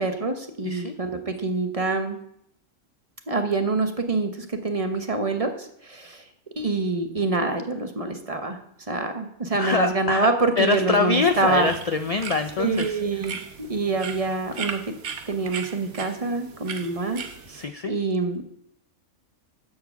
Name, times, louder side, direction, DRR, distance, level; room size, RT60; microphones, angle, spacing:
voice 1, 0.0-2.2 3.3-6.2 6.6-8.6 8.9-11.7 12.6-14.8 15.3-17.2 17.9-18.4, right 3 dB, 30° right, 6 dB, 0.9 m, -26 dB
voice 2, 9.5-10.3 10.6-12.9 17.5-17.9, left 4 dB, 65° left, 8 dB, 0.3 m, -24 dB
sound 1, 11.1-17.6, right 6 dB, 75° right, 1.2 m, -38 dB
10.5 x 4.7 x 6.9 m, 0.72 s
omnidirectional pair, 1.3 m